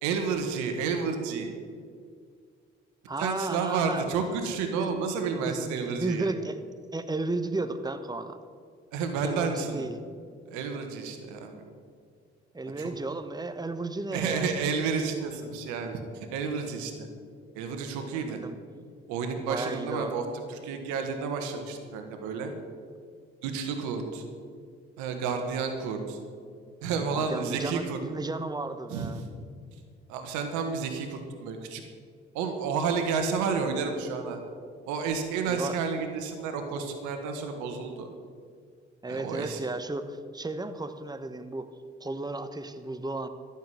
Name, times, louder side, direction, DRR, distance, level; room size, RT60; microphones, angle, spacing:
voice 1, 0.0-1.5 3.2-6.3 8.9-9.9 10.5-11.5 12.8-12.9 14.1-17.1 17.5-18.4 19.1-22.5 23.4-24.2 25.0-26.2 26.8-28.0 28.9-29.3 30.1-31.8 32.3-34.4 34.8-38.1 39.1-39.6, right 5 dB, 80° right, 6 dB, 1.5 m, -31 dB
voice 2, 3.1-4.0 4.8-4.9 5.4-6.6 6.9-8.4 9.2-10.0 12.5-14.5 18.0-18.5 19.5-20.1 27.1-29.2 35.5-35.8 39.0-41.7 42.0-43.3, right 2 dB, 15° right, 10 dB, 1.1 m, -34 dB
13.5 x 7.4 x 7.8 m, 2.1 s
hypercardioid pair, 45°, 29 cm